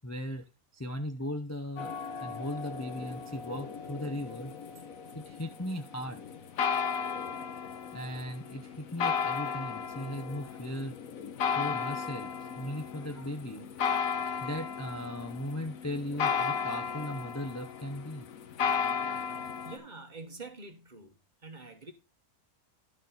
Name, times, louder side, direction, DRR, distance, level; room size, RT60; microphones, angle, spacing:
voice 1, 0.0-0.5 0.7-1.9 2.2-4.5 5.1-6.2 7.9-11.0 11.5-14.1 14.4-18.3, equal, 15° left, 0.5 m, -38 dB
sound 1, 1.8-19.8, left 6 dB, 65° left, 1.3 m, -35 dB
voice 2, 19.6-21.2 21.4-21.9, right 3 dB, 35° right, 1.3 m, -46 dB
11.5 x 6.6 x 4.0 m
omnidirectional pair, 1.6 m